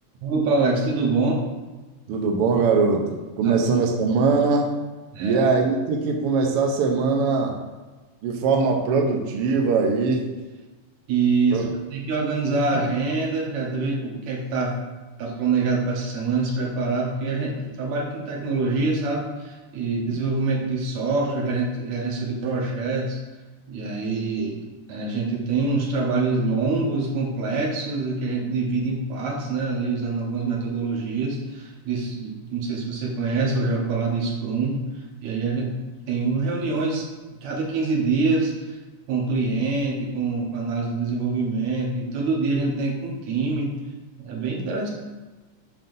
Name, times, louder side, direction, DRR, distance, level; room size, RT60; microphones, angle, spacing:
voice 1, 0.2-1.4 3.4-3.5 5.1-5.4 11.1-14.8 15.2-23.2 23.7-24.6 24.9-34.8 35.2-37.1 37.4-38.8 39.1-43.7 44.2-44.9, right 3 dB, 70° right, -2 dB, 2.3 m, -25 dB
voice 2, 2.1-4.8 5.2-7.5 8.2-10.3 11.5-11.6, right 4 dB, 85° right, 2 dB, 1.3 m, -21 dB
7.7 x 5.4 x 2.6 m, 1.2 s
omnidirectional pair, 3.5 m